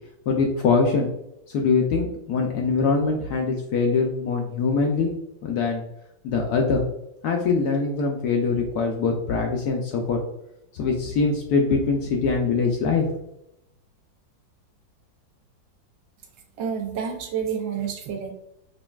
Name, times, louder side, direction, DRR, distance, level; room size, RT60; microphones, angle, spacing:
voice 1, 0.3-1.1 1.5-5.1 5.4-5.8 6.2-6.8 7.2-10.2 10.7-13.0, left 4 dB, 70° left, 1 dB, 0.9 m, -23 dB
voice 2, 16.6-18.3, right 7 dB, 75° right, 3 dB, 1.3 m, -29 dB
5.2 x 2.6 x 2.3 m, 0.80 s
omnidirectional pair, 2.1 m